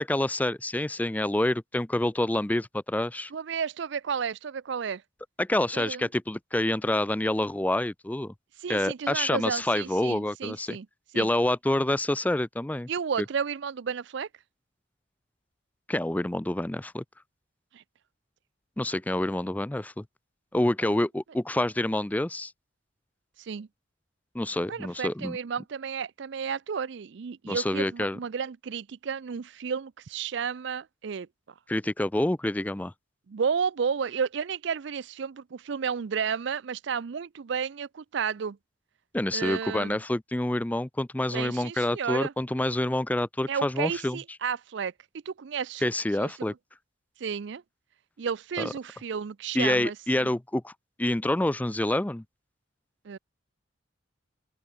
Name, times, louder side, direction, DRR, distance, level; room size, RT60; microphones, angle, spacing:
voice 1, 0.0-3.3 5.4-8.3 8.7-10.8 11.1-12.9 15.9-17.0 18.8-20.0 20.5-22.5 24.3-25.4 27.5-28.2 31.7-32.9 39.1-44.2 45.8-46.5 48.6-48.7 49.5-50.7 51.0-52.2, left 1 dB, 10° left, 0.4 m, -27 dB
voice 2, 3.3-5.0 5.7-6.1 8.6-10.9 11.1-11.3 12.9-14.3 17.7-17.8 20.9-21.0 23.4-23.7 24.7-31.3 33.3-38.6 39.3-40.0 41.3-42.3 43.5-44.9 45.3-45.8 46.2-46.3 47.2-47.6 48.2-50.3 53.0-53.2, right 6 dB, 60° right, 0.4 m, -32 dB
open air
head